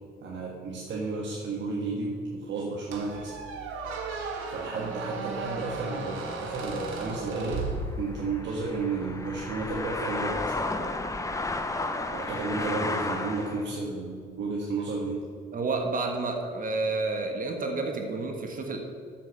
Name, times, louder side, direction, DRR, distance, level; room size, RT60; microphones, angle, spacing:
voice 1, 0.2-3.3 4.5-7.6 8.0-10.4 12.1-15.2, right 3 dB, 65° right, -3 dB, 1.6 m, -32 dB
Squeak, 2.9-8.4, right 4 dB, 85° right, 1.4 m, -35 dB
sound 1, 6.6-13.7, left 2 dB, 15° left, 0.9 m, -33 dB
voice 2, 15.5-18.8, right 3 dB, 45° right, 3 dB, 1.3 m, -30 dB
7.5 x 7.3 x 6.7 m, 2.1 s
cardioid pair, 90°, 20 cm